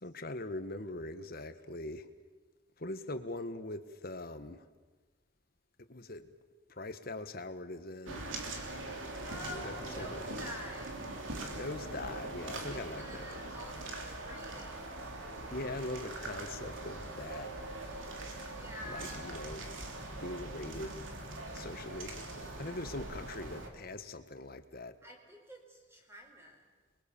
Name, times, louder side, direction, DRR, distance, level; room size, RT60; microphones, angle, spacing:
voice 1, 0.0-2.1 2.8-4.6 5.9-6.3 6.7-8.3 9.5-10.2 11.5-13.3 15.5-17.5 18.9-19.7 20.2-21.0 21.5-22.2 22.6-25.0, left 2 dB, 50° left, 10 dB, 1.4 m, -42 dB
sound 1, 8.1-23.7, right 2 dB, 85° right, 3.2 m, -42 dB
voice 2, 8.9-11.0 12.7-14.9 18.5-19.2 25.0-26.7, left 1 dB, 15° right, 1 dB, 4.4 m, -49 dB
28.5 x 22.5 x 7.2 m, 1.3 s
head